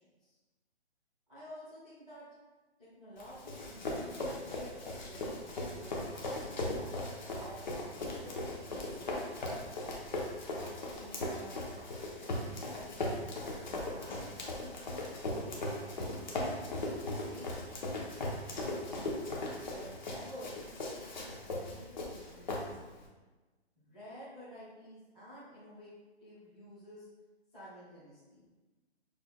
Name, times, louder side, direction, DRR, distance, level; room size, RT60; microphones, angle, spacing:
voice 1, 1.3-2.2 2.8-6.9 7.4-9.0 10.2-11.7 12.1-16.6 17.2-17.6 18.5-19.1 19.6-22.8 23.7-25.9 26.2-27.1 27.5-28.5, equal, 5° left, -20 dB, 0.5 m, -52 dB
Run, 3.2-23.0, left 2 dB, 45° left, 0.8 m, -38 dB
sound 1, 5.5-5.7 6.2-6.4 6.8-8.3 8.7-8.8 9.4-9.7 10.1-10.3 10.6-10.8 11.2-11.4 11.8-12.0 12.3-14.2, right 2 dB, 40° right, 1.1 m, -57 dB
6.4 x 3.3 x 2.3 m, 1.2 s
hypercardioid pair, 170°, 33 cm